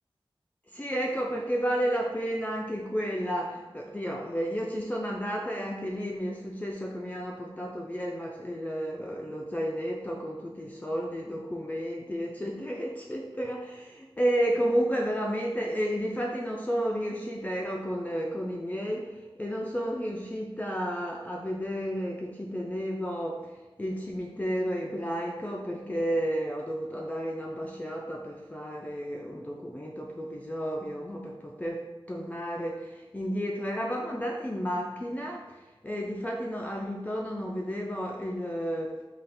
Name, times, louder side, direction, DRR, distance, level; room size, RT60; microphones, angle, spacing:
voice 1, 0.7-23.5 23.8-39.0, equal, 15° left, -1 dB, 0.4 m, -32 dB
4.1 x 2.4 x 3.4 m, 1.2 s
wide cardioid pair, 75°, 10 cm